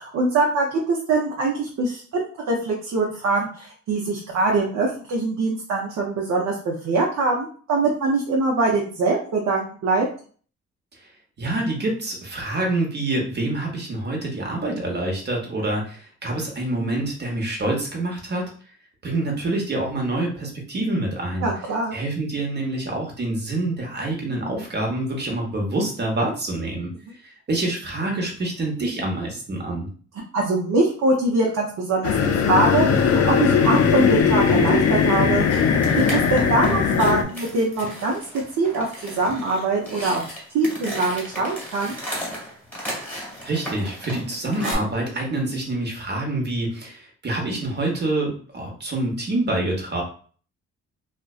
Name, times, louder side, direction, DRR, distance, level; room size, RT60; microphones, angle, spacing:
voice 1, 0.0-10.1 21.4-21.9 30.3-35.5 36.0-38.2 38.6-40.2 40.5-41.9, right 3 dB, 60° right, -2 dB, 0.7 m, -23 dB
voice 2, 11.4-18.5 19.0-21.5 21.9-26.9 27.2-29.9 43.1-50.0, right 2 dB, 35° right, 0 dB, 0.9 m, -26 dB
sound 1, 32.0-37.2, left 6 dB, 55° left, 0.4 m, -19 dB
sound 2, 35.5-44.8, equal, 5° left, 1.3 m, -35 dB
2.5 x 2.1 x 2.3 m, 0.43 s
cardioid pair, 90°, 30 cm